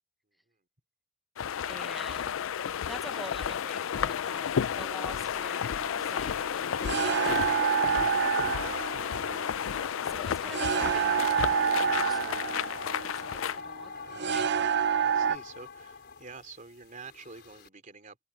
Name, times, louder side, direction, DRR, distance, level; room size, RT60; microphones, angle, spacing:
sound 1, 1.4-13.6, left 8 dB, 75° left, 0.4 m, -32 dB
voice 1, 1.7-2.3 2.9-7.3 10.0-13.9 14.2-14.6, equal, ahead, 0.7 m, -46 dB
sound 2, 5.8-15.4, right 7 dB, 55° right, 0.6 m, -29 dB
voice 2, 9.8-10.1 15.0-18.2, right 4 dB, 40° right, 3.2 m, -48 dB
sound 3, 10.6-17.7, left 5 dB, 55° left, 4.9 m, -43 dB
head